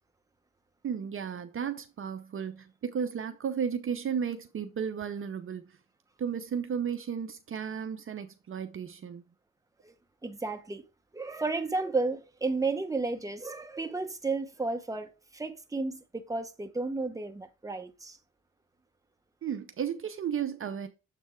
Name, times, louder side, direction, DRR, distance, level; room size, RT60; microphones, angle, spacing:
voice 1, 0.8-5.8 6.2-9.2 19.4-20.9, right 7 dB, 45° right, 0.7 m, -34 dB
voice 2, 10.2-10.8 11.1-18.2, right 3 dB, 10° right, 1.0 m, -33 dB
7.4 x 3.5 x 4.4 m
cardioid pair, 90°, 30 cm